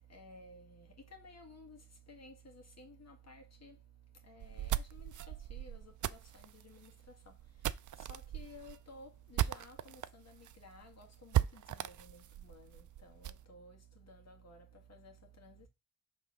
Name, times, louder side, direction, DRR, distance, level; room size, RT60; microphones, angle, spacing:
voice 1, 0.1-0.7 1.1-1.8 2.1-3.7 4.3-5.1 5.5-5.8 6.6-6.9 8.1-12.7 13.2-13.7 14.1-14.6 15.0-15.1 15.4-15.5, left 1 dB, 50° left, 1.8 m, -54 dB
sound 1, 4.4-10.1 10.4-10.5 10.8-10.9 11.3-13.4, right 12 dB, 65° right, 0.4 m, -37 dB
5.3 x 3.6 x 5.8 m
wide cardioid pair, 100°, 32 cm